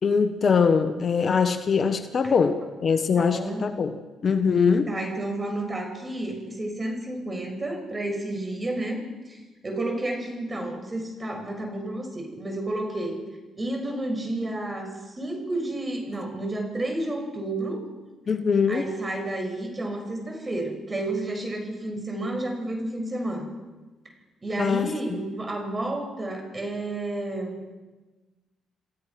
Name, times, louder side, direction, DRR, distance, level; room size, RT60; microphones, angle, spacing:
voice 1, 0.0-4.0 4.2-4.9 18.3-18.8 24.6-24.9, left 5 dB, 45° left, 9 dB, 1.3 m, -22 dB
voice 2, 3.1-3.7 4.9-13.2 13.5-17.9 18.7-23.5 24.4-27.6, right 1 dB, 25° right, 3 dB, 6.7 m, -31 dB
29.0 x 15.0 x 6.0 m, 1.2 s
cardioid pair, 80°, 0 cm